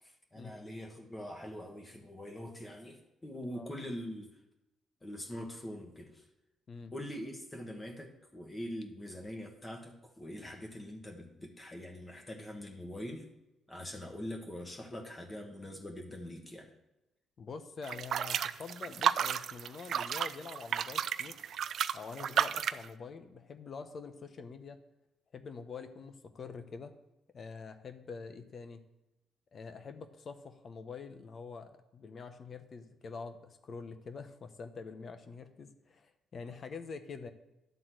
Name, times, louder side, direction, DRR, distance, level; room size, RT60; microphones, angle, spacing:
voice 1, 0.0-4.4 5.0-6.3 6.9-13.3 13.7-16.7, left 1 dB, 20° left, 1 dB, 1.4 m, -43 dB
voice 2, 17.4-21.4 21.9-24.8 25.3-26.9 27.3-28.8 29.5-37.3, left 5 dB, 50° left, 8 dB, 1.0 m, -45 dB
sound 1, 17.8-22.9, right 8 dB, 65° right, 0.4 m, -32 dB
11.5 x 3.9 x 7.6 m, 0.94 s
cardioid pair, 90°, 0 cm